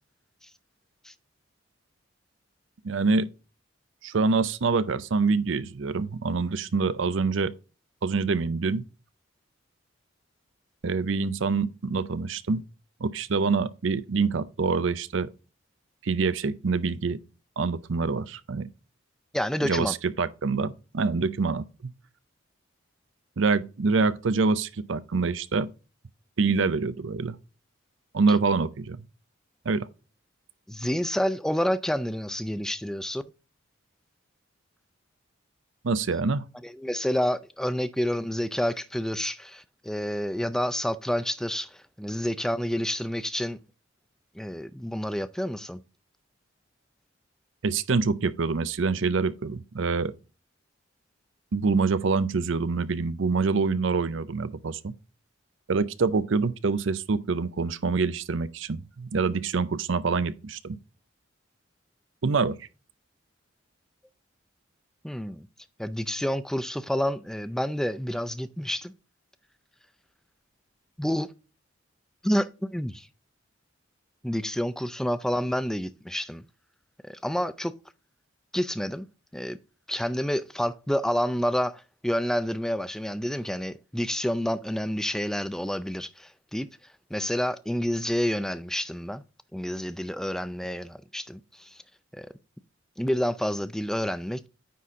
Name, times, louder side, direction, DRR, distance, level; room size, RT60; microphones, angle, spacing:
voice 1, 2.8-3.3 4.0-7.5 8.0-8.8 10.8-12.6 13.0-15.3 16.0-17.2 17.6-18.7 19.6-21.9 23.4-25.7 26.4-27.4 28.1-29.0 29.7-29.9 35.8-36.5 47.6-50.1 51.5-54.9 55.7-60.8 62.2-62.6, right 4 dB, 70° right, 0.6 m, -26 dB
voice 2, 19.3-19.9 30.7-33.2 36.6-43.6 44.4-45.8 65.0-65.5 65.8-68.9 71.0-71.3 72.2-73.1 74.2-76.4 77.0-77.7 78.5-79.1 79.3-79.6 79.9-86.7 87.1-89.2 89.5-91.8 92.1-92.3 93.0-94.5, equal, 5° left, 0.4 m, -29 dB
9.3 x 4.2 x 3.6 m
head